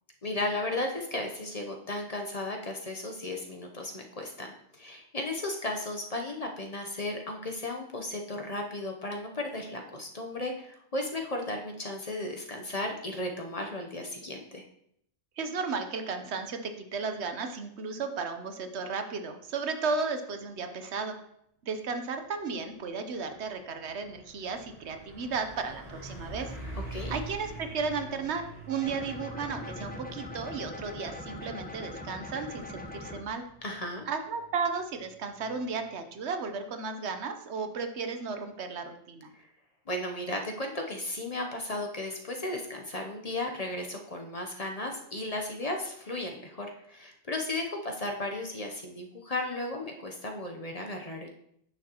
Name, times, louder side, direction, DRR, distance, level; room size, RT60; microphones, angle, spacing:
voice 1, 0.2-14.6 26.9-27.2 33.6-34.1 39.3-39.5 39.9-51.3, left 2 dB, 40° left, 2 dB, 0.8 m, -35 dB
voice 2, 15.4-21.2 21.6-26.5 27.1-33.4 34.1-39.3, right 4 dB, 75° right, 7 dB, 1.1 m, -34 dB
Truck, 22.8-22.9 23.2-35.8, right 1 dB, 55° right, 2.5 m, -46 dB
sound 1, 28.8-33.2, left 2 dB, 10° left, 0.8 m, -42 dB
10.0 x 6.3 x 2.9 m, 0.72 s
omnidirectional pair, 1.2 m